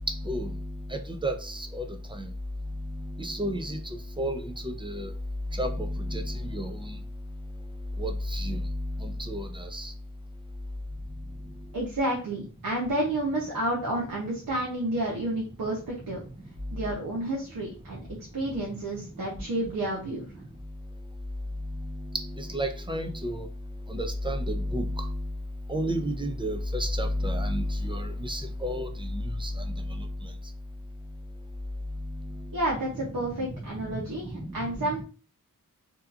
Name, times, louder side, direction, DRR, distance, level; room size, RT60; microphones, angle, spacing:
voice 1, 0.0-2.3 2.7-5.1 5.5-7.0 8.0-9.9 11.2-11.7 16.7-16.9 18.5-18.6 18.9-19.3 19.6-19.7 21.6-23.5 23.9-25.4 25.7-30.3 31.9-32.6 32.9-35.0, equal, 15° right, 6 dB, 0.4 m, -32 dB
voice 2, 11.7-16.2 16.7-18.0 18.3-20.2 32.5-35.0, right 1 dB, 85° right, -3 dB, 0.7 m, -30 dB
2.7 x 2.3 x 2.4 m, 0.38 s
wide cardioid pair, 40°, 34 cm